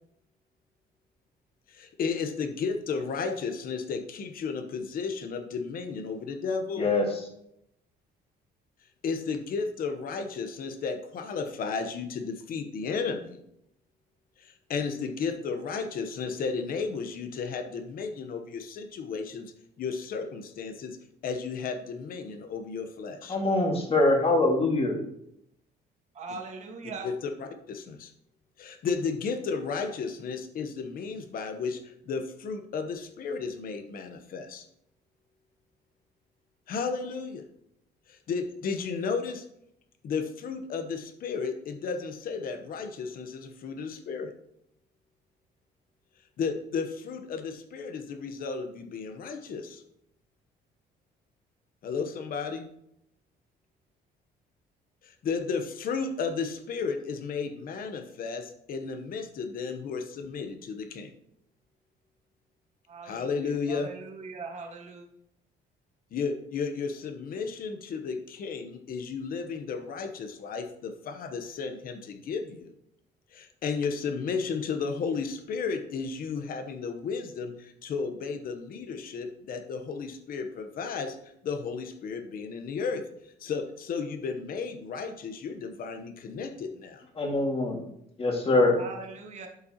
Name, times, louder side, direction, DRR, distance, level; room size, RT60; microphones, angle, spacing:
voice 1, 1.7-6.9 9.0-13.4 14.4-21.0 21.2-23.4 26.3-26.4 26.8-28.1 28.6-34.6 36.7-37.4 38.1-39.4 40.0-44.3 46.4-49.8 51.8-52.7 55.0-61.1 63.0-63.9 66.1-72.7 73.3-81.2 81.4-83.0 83.4-87.0, left 5 dB, 55° left, 7 dB, 1.0 m, -33 dB
voice 2, 23.3-24.9 87.2-87.8 88.2-88.7, left 2 dB, 35° left, 1 dB, 2.0 m, -23 dB
voice 3, 26.1-27.1 62.9-65.0 88.8-89.5, right 4 dB, 40° right, 3 dB, 1.6 m, -41 dB
12.0 x 5.4 x 2.9 m, 0.75 s
cardioid pair, 140°, 18 cm